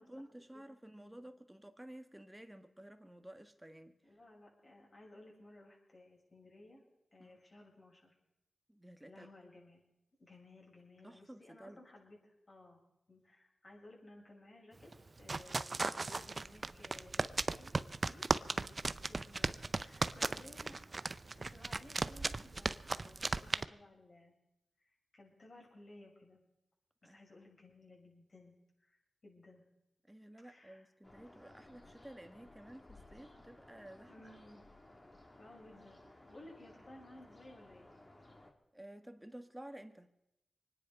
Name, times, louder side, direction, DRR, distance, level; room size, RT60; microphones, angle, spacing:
voice 1, 0.0-3.9 7.2-7.4 8.7-9.3 11.0-11.8 27.0-27.3 30.1-34.1 38.7-40.1, right 1 dB, 10° right, 1.8 m, -53 dB
voice 2, 1.0-1.3 4.0-6.8 7.1-8.2 9.1-9.8 10.2-12.8 13.1-20.8 21.4-24.3 24.8-26.4 27.0-29.6 30.4-30.9 34.1-34.6 35.4-37.9, left 2 dB, 50° left, 6.9 m, -58 dB
sound 1, 14.8-23.6, right 3 dB, 45° right, 0.6 m, -36 dB
sound 2, 31.0-38.5, left 1 dB, 30° left, 3.1 m, -59 dB
24.0 x 10.0 x 5.4 m
cardioid pair, 45°, 0 cm